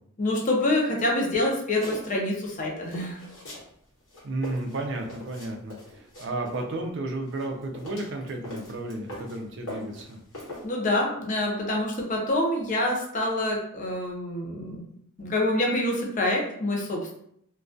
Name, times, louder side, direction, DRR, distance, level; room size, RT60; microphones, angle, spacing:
voice 1, 0.2-3.2 10.6-14.8 15.2-17.1, left 1 dB, 35° left, -1 dB, 0.5 m, -26 dB
sound 1, 1.8-2.4 2.9-3.7 4.0-6.7 7.3-9.4 9.7-10.7, left 1 dB, 65° left, 1.0 m, -41 dB
voice 2, 4.2-10.2, right 2 dB, 55° right, 3 dB, 0.4 m, -33 dB
2.2 x 2.2 x 2.5 m, 0.70 s
head